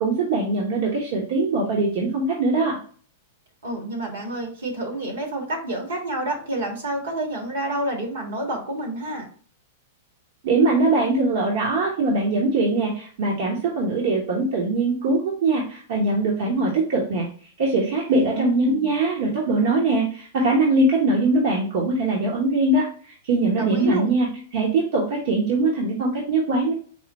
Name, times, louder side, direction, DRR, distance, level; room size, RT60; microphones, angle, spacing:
voice 1, 0.0-2.8 10.4-17.3 17.6-24.3 24.5-26.7, right 2 dB, 65° right, -2 dB, 1.0 m, -22 dB
voice 2, 3.6-9.3 18.1-18.9 23.5-24.1, right 1 dB, 80° right, 2 dB, 1.7 m, -29 dB
4.8 x 2.2 x 4.0 m, 0.44 s
hypercardioid pair, 110°, 0 cm